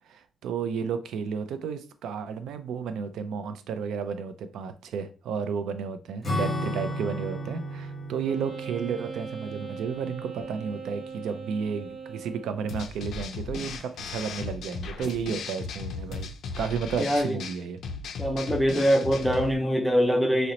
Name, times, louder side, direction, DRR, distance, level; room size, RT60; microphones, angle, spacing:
voice 1, 0.1-16.3 16.6-17.8, right 6 dB, 85° right, 0.3 m, -32 dB
Acoustic guitar / Strum, 6.2-11.0, equal, 25° left, 1.2 m, -34 dB
Wind instrument woodwind instrument, 8.2-12.9, right 5 dB, 45° right, 1.1 m, -40 dB
sound 1, 12.7-19.5, left 4 dB, 65° left, 0.4 m, -36 dB
voice 2, 17.0-17.4 18.2-20.5, equal, ahead, 0.5 m, -23 dB
2.9 x 2.0 x 3.8 m
cardioid pair, 165°, 0 cm